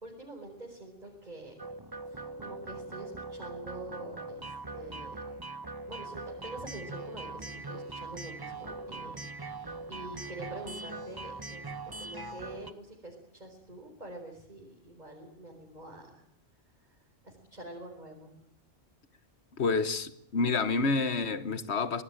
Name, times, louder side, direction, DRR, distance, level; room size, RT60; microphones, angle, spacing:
voice 1, 0.0-1.6 2.1-5.2 5.9-16.2 16.8-16.9 17.2-18.3, right 2 dB, 40° right, 4.8 m, -46 dB
sound 1, 1.6-12.7, right 3 dB, 20° right, 1.0 m, -41 dB
voice 2, 19.6-22.0, left 4 dB, 70° left, 1.6 m, -28 dB
25.0 x 19.5 x 9.0 m
omnidirectional pair, 1.2 m